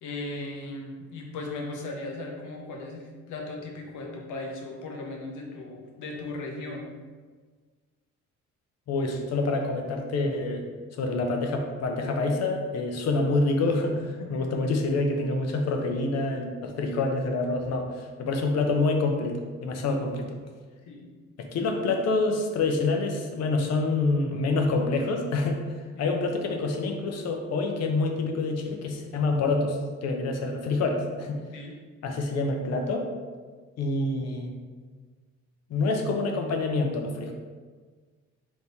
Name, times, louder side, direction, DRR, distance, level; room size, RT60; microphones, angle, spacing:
voice 1, 0.0-6.9 13.1-13.2 14.2-14.5 20.9-21.1 25.9-26.2 31.5-31.7, left 2 dB, 85° left, 0 dB, 0.9 m, -37 dB
voice 2, 8.9-10.6 11.0-20.4 21.4-25.6 26.0-31.4 32.0-33.1 33.8-34.5 35.7-37.3, left 3 dB, 60° left, 3 dB, 0.6 m, -27 dB
3.6 x 3.0 x 4.0 m, 1.5 s
cardioid pair, 180°, 29 cm